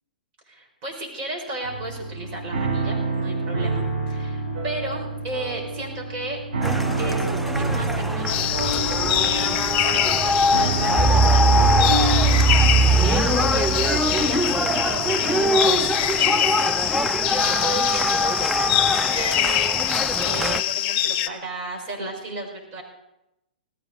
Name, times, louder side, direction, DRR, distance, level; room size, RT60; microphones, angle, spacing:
voice 1, 0.5-6.4 7.0-8.8 9.1-12.3 13.0-14.5 14.7-16.7 17.0-19.8 20.2-22.8, right 2 dB, 40° right, 0 dB, 6.0 m, -34 dB
sound 1, 1.6-17.9, right 3 dB, 75° right, 6.9 m, -29 dB
sound 2, 6.6-20.6, right 2 dB, 5° right, 0.6 m, -22 dB
sound 3, 8.3-21.3, left 12 dB, 40° left, 0.9 m, -24 dB
18.5 x 15.0 x 4.1 m, 0.89 s
figure-of-eight pair, 120°, 5 cm